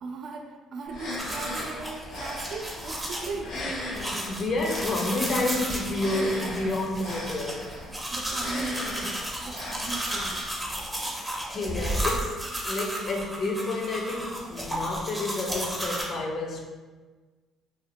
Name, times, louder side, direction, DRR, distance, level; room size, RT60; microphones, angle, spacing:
voice 1, 0.0-3.6 8.1-10.5, right 4 dB, 60° right, 2 dB, 0.3 m, -38 dB
sound 1, 0.9-10.8, left 1 dB, 85° left, 0.9 m, -38 dB
sound 2, 1.2-16.0, right 1 dB, 5° right, 0.5 m, -34 dB
voice 2, 3.4-7.7 11.5-12.4 12.7-16.6, left 2 dB, 50° left, 1 dB, 0.4 m, -30 dB
2.8 x 2.0 x 2.8 m, 1.3 s
cardioid pair, 100°, 0 cm